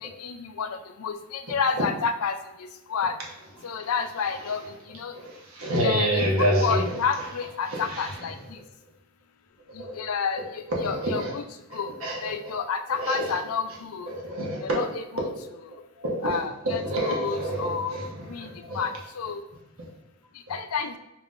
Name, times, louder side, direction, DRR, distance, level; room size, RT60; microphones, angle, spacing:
voice 1, 0.0-0.7 1.0-2.3 2.9-3.1 3.6-5.1 5.8-8.3 10.0-11.4 11.7-11.9 12.2-14.1 14.6-15.0 16.2-18.0 18.3-18.5 18.7-19.4 20.5-20.9, left 6 dB, 90° left, 8 dB, 0.4 m, -30 dB
voice 2, 5.1-6.9 7.7-8.3 9.8-10.0 10.7-11.3 11.7-12.5 12.9-13.4 13.7-13.8 14.1-14.8 16.0-18.8, right 1 dB, 80° right, -3 dB, 1.1 m, -28 dB
5.4 x 3.0 x 2.5 m, 0.93 s
head